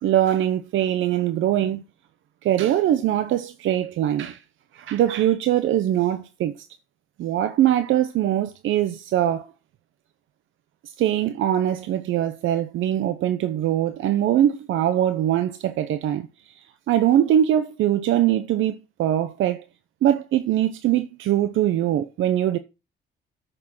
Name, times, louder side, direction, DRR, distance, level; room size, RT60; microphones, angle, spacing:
voice 1, 0.0-1.8 2.4-4.4 4.7-6.5 7.2-9.5 11.0-16.3 16.9-19.6 20.0-22.6, right 11 dB, 80° right, 0.8 m, -22 dB
8.7 x 6.4 x 6.1 m
cardioid pair, 90°, 20 cm